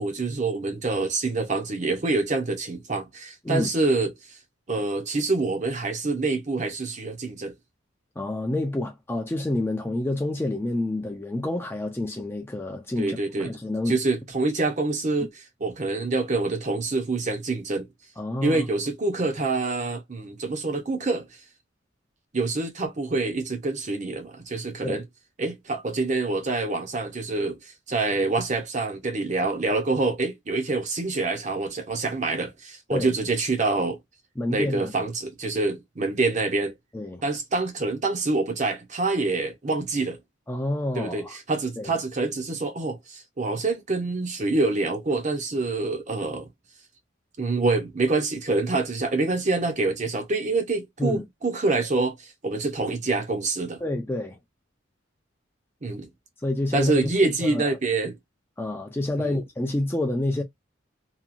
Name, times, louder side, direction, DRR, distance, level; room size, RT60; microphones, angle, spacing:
voice 1, 0.0-4.1 4.7-7.5 13.0-13.6 13.9-17.9 18.4-21.3 22.3-25.0 25.4-27.6 27.9-34.0 34.5-36.7 37.2-40.2 40.9-46.5 47.4-53.8 55.8-56.1 56.7-58.2 59.2-59.4, right 3 dB, 35° right, 0.7 m, -26 dB
voice 2, 8.2-14.0 18.2-18.6 24.8-25.0 32.9-33.1 34.4-34.9 36.9-37.2 40.5-41.3 41.8-41.9 51.0-51.3 53.8-54.4 56.4-57.8 58.6-60.4, left 1 dB, 10° left, 0.4 m, -28 dB
2.8 x 2.3 x 2.4 m
head